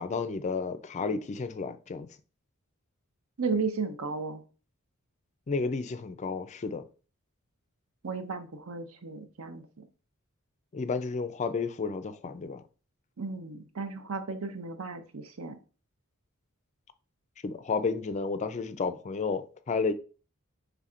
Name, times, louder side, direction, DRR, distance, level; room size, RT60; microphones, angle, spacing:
voice 1, 0.0-2.1 5.5-6.9 10.7-12.6 17.4-19.9, left 4 dB, 35° left, 0.4 m, -32 dB
voice 2, 3.4-4.4 8.0-9.7 13.2-15.6, right 4 dB, 75° right, 0.7 m, -34 dB
5.8 x 3.4 x 2.4 m
head